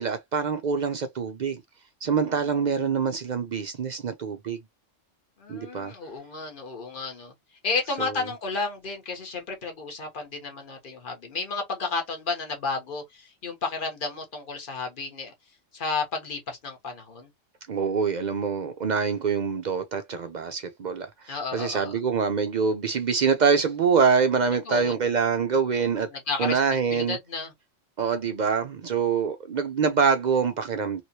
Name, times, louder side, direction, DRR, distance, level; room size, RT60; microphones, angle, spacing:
voice 1, 0.0-1.6 2.0-4.6 5.5-5.9 8.0-8.1 17.7-26.1 26.4-27.2 28.0-31.0, right 6 dB, 60° right, 0.4 m, -25 dB
voice 2, 2.0-3.0 5.4-7.3 7.6-15.3 15.7-17.3 21.3-22.0 24.6-24.9 26.1-26.6 26.9-27.5, left 4 dB, 45° left, 1.2 m, -32 dB
3.0 x 2.9 x 2.8 m
omnidirectional pair, 1.3 m